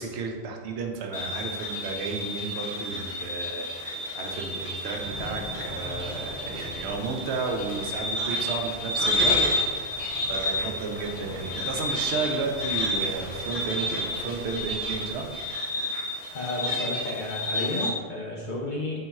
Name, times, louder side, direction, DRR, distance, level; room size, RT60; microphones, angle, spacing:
voice 1, 0.0-9.4 9.7-15.3, right 4 dB, 75° right, 2 dB, 0.8 m, -33 dB
sound 1, 1.1-17.9, left 1 dB, 85° left, 1.0 m, -30 dB
sound 2, 4.9-15.5, left 1 dB, 15° left, 0.7 m, -43 dB
voice 2, 16.3-19.0, left 2 dB, 55° left, -4 dB, 0.6 m, -32 dB
3.7 x 2.3 x 4.1 m, 1.5 s
omnidirectional pair, 1.1 m